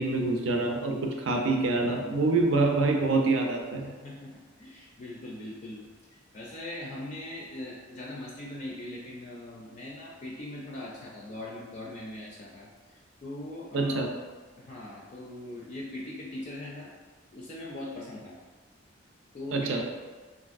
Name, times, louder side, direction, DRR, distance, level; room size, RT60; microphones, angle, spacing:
voice 1, 0.0-3.9 13.7-14.1 19.5-19.8, right 3 dB, 80° right, 2 dB, 0.4 m, -26 dB
voice 2, 3.8-5.8 6.1-14.1 14.6-16.9 17.3-18.4 19.3-19.8, left 1 dB, 40° left, -4 dB, 0.4 m, -41 dB
3.2 x 2.5 x 2.5 m, 1.4 s
head